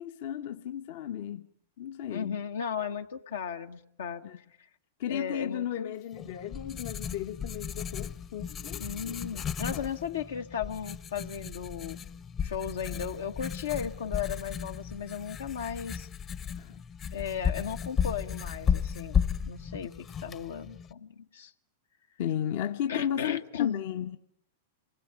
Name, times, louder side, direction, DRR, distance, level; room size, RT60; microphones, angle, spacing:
voice 1, 0.0-1.5 1.8-2.4 4.2-4.4 5.0-9.4 9.7-9.9 16.6-16.8 22.2-24.2, left 10 dB, 60° left, 1.0 m, -35 dB
voice 2, 2.1-4.2 5.1-5.9 8.8-12.0 12.4-16.1 17.1-21.5 22.9-23.8, left 8 dB, 75° left, 1.3 m, -35 dB
Writing, 6.1-20.9, left 7 dB, 30° left, 1.0 m, -34 dB
26.5 x 20.5 x 8.5 m
hypercardioid pair, 100°, 0 cm